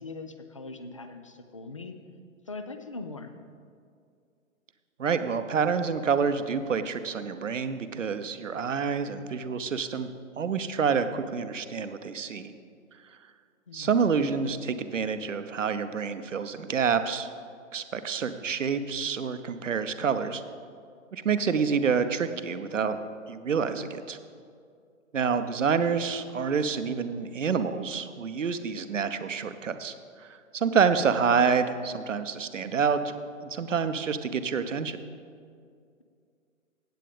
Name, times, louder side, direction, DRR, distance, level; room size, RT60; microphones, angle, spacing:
voice 1, 0.0-2.0 2.5-3.4 13.7-14.0 25.1-25.6, left 3 dB, 25° left, 8 dB, 0.3 m, -41 dB
voice 2, 5.0-10.1 10.4-12.5 13.7-17.3 17.7-20.4 21.1-23.0 23.3-24.2 25.1-33.1 33.4-35.0, right 6 dB, 70° right, 10 dB, 0.8 m, -28 dB
15.5 x 8.4 x 3.4 m, 2.3 s
figure-of-eight pair, 125°, 40 cm